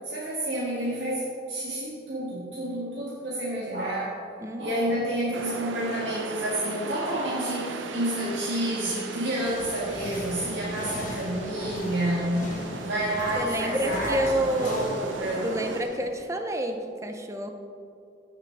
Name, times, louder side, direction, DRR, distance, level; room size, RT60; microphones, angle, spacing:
voice 1, 0.0-4.2 4.6-12.4 12.8-14.3 14.6-15.5, right 1 dB, 70° right, -7 dB, 1.7 m, -29 dB
voice 2, 4.4-4.9 13.3-14.8 15.4-17.5, right 1 dB, 15° right, 5 dB, 0.5 m, -29 dB
sound 1, 5.3-15.8, right 3 dB, 85° right, 0.7 m, -38 dB
sound 2, 9.5-16.1, left 1 dB, 45° left, 1.1 m, -38 dB
15.0 x 5.9 x 3.4 m, 2.5 s
head